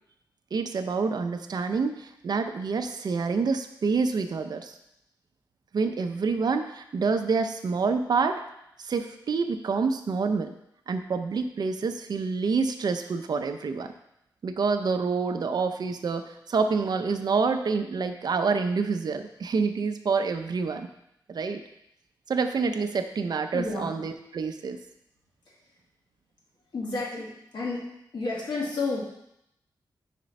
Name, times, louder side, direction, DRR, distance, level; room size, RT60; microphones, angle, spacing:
voice 1, 0.5-4.7 5.7-8.4 8.8-10.5 10.9-13.9 14.4-20.9 21.3-21.6 22.3-24.8, right 4 dB, 60° right, 8 dB, 0.5 m, -27 dB
voice 2, 23.5-24.1 26.7-27.9 28.1-29.0, left 3 dB, 70° left, -5 dB, 2.1 m, -31 dB
5.0 x 4.4 x 5.2 m, 0.79 s
wide cardioid pair, 95°, 8 cm